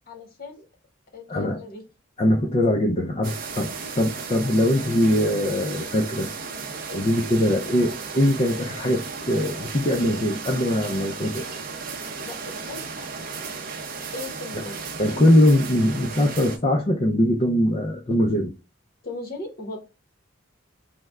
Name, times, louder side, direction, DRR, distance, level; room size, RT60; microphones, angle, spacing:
voice 1, 0.1-0.6 1.1-1.8 12.2-13.1 14.1-14.8 19.0-19.8, left 2 dB, 45° left, 1.0 m, -37 dB
voice 2, 1.3-1.6 2.2-6.3 6.9-11.5 14.5-14.6 15.0-18.5, left 1 dB, 30° left, 0.4 m, -22 dB
sound 1, 3.2-16.6, right 4 dB, 45° right, 0.5 m, -35 dB
3.3 x 2.1 x 3.4 m
head